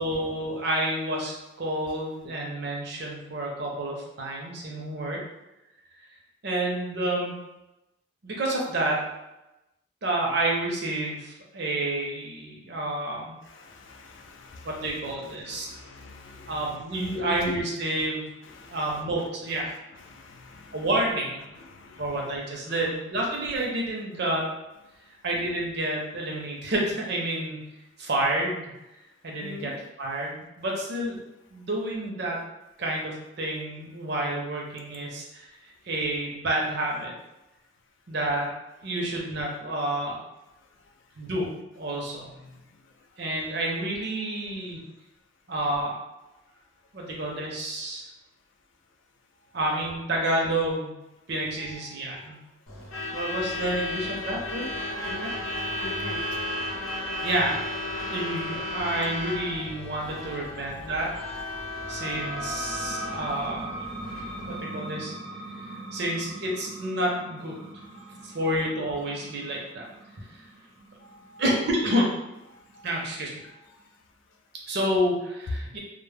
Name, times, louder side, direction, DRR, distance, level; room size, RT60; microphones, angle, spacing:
voice 1, 0.0-5.2 6.4-7.3 8.2-9.0 10.0-13.3 14.6-15.6 16.5-18.3 18.7-19.7 20.7-21.4 22.0-24.5 25.2-27.7 28.0-28.7 29.2-31.2 31.5-32.4 32.8-35.5 35.9-37.1 38.1-38.5 38.8-40.2 41.2-41.5 41.8-42.3 43.2-44.8 45.5-46.0 46.9-48.1 49.5-51.0 51.3-52.4 53.1-54.7 55.0-55.3 57.2-57.7 58.1-61.1 61.9-63.8 64.5-65.1 65.9-67.7 68.2-69.8 70.3-70.4 71.4-72.1 72.8-73.3 74.7-75.8, right 1 dB, 50° right, -2 dB, 0.6 m, -29 dB
voice 2, 13.5-17.6 18.0-18.1 18.4-19.0 20.0-20.9 21.5-22.3 22.7-22.8 29.4-29.7 42.1-42.6 43.8-43.9 51.6-52.3 54.8-56.2 60.1-61.5 63.0-63.3 68.0-68.6 71.0-71.4 72.5-72.9 73.4-73.9, left 3 dB, 60° left, 3 dB, 0.3 m, -45 dB
Truck / Alarm, 52.7-64.6, left 1 dB, 80° left, 0.7 m, -34 dB
sound 1, 61.8-73.1, right 1 dB, 10° right, 0.5 m, -40 dB
2.1 x 2.0 x 3.2 m, 0.96 s
head